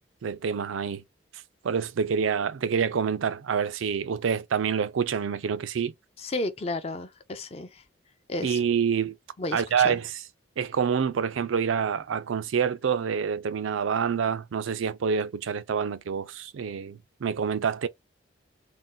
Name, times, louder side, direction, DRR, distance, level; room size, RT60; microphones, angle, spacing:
voice 1, 0.2-1.0 1.6-5.9 8.4-9.2 9.5-10.2 10.6-17.9, right 7 dB, 85° right, 0.4 m, -27 dB
voice 2, 6.2-7.8 8.3-8.6 9.4-10.0, left 2 dB, 30° left, 0.4 m, -33 dB
2.5 x 2.1 x 3.8 m
head